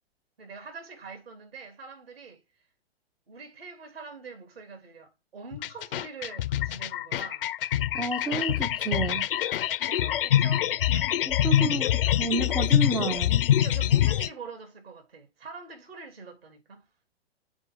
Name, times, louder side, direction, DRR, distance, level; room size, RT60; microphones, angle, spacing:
voice 1, 0.4-2.4 3.3-7.5 9.9-11.3 11.8-12.2 12.9-13.1 13.6-16.8, right 4 dB, 70° right, 3.0 m, -44 dB
sound 1, 5.5-14.3, left 11 dB, 60° left, 0.6 m, -25 dB
voice 2, 7.9-9.3 11.3-13.4, right 3 dB, 5° right, 0.4 m, -30 dB
9.5 x 4.7 x 3.7 m
figure-of-eight pair, 115°, 31 cm